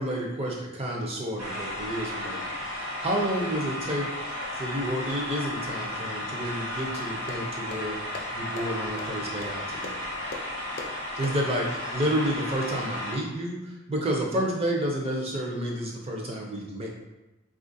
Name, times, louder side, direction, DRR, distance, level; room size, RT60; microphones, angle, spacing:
voice 1, 0.0-4.1 4.5-10.0 11.1-16.9, equal, 25° right, -1 dB, 0.5 m, -30 dB
sound 1, 1.4-13.2, left 1 dB, 75° right, 0.9 m, -34 dB
sound 2, 6.9-11.8, left 3 dB, 40° left, 0.4 m, -43 dB
3.6 x 2.4 x 2.6 m, 0.97 s
head